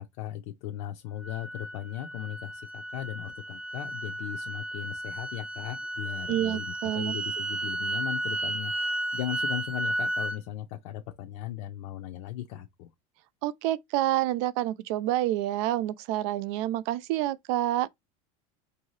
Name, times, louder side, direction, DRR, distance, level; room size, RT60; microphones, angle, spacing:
voice 1, 0.0-12.9, left 12 dB, 55° left, 0.6 m, -37 dB
sound 1, 1.2-10.4, right 1 dB, 5° right, 0.8 m, -33 dB
voice 2, 6.3-7.2 13.4-17.9, right 14 dB, 55° right, 0.4 m, -28 dB
4.6 x 2.7 x 3.1 m
supercardioid pair, 160°, 18 cm